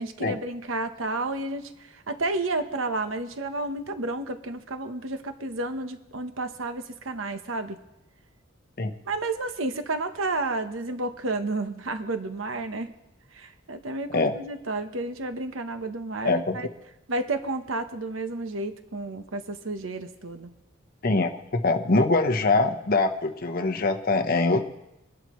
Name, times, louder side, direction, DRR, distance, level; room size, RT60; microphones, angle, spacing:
voice 1, 0.0-7.8 9.0-12.9 13.3-16.7 17.1-20.5, right 2 dB, 85° right, 8 dB, 1.0 m, -31 dB
voice 2, 16.2-16.6 21.0-24.6, left 3 dB, 45° left, 6 dB, 1.0 m, -23 dB
23.0 x 11.5 x 3.1 m, 0.92 s
head